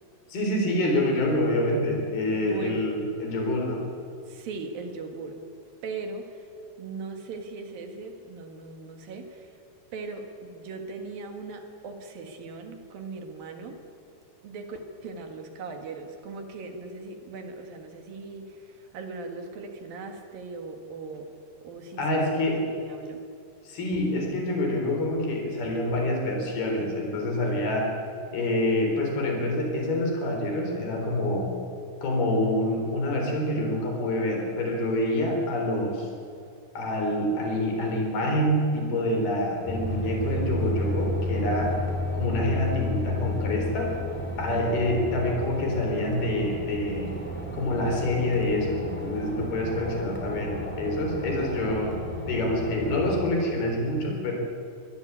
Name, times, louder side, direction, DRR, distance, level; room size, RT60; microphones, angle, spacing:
voice 1, 0.3-3.8 22.0-22.6 23.7-28.0 28.3-31.6 32.0-36.1 36.8-41.8 42.1-44.0 44.4-47.2 47.5-52.0 52.3-54.3, left 1 dB, 75° left, 2 dB, 5.8 m, -26 dB
voice 2, 2.3-2.8 4.3-5.4 5.8-6.5 6.8-9.6 9.9-13.8 14.4-21.3 21.6-22.5 22.8-23.2 44.5-44.9, right 4 dB, 65° right, 5 dB, 3.5 m, -39 dB
sound 1, 39.7-53.2, left 1 dB, 5° left, 2.2 m, -32 dB
23.5 x 19.0 x 8.6 m, 2.4 s
omnidirectional pair, 4.5 m